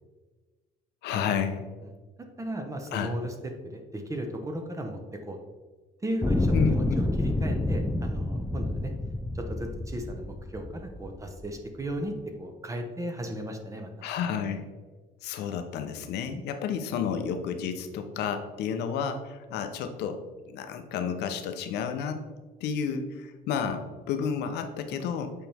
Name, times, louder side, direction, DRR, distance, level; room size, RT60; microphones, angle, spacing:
voice 1, 1.0-1.6 2.9-3.1 6.5-7.0 14.0-14.6 15.2-22.2 22.6-25.3, left 7 dB, 80° left, 7 dB, 0.8 m, -31 dB
voice 2, 2.4-3.3 3.7-5.4 6.0-8.9 9.3-13.9, right 1 dB, 20° right, 4 dB, 1.0 m, -35 dB
sound 1, 6.2-11.5 12.2-12.3, left 1 dB, 5° left, 0.4 m, -28 dB
8.3 x 4.4 x 3.5 m, 1.3 s
cardioid pair, 110°, 17 cm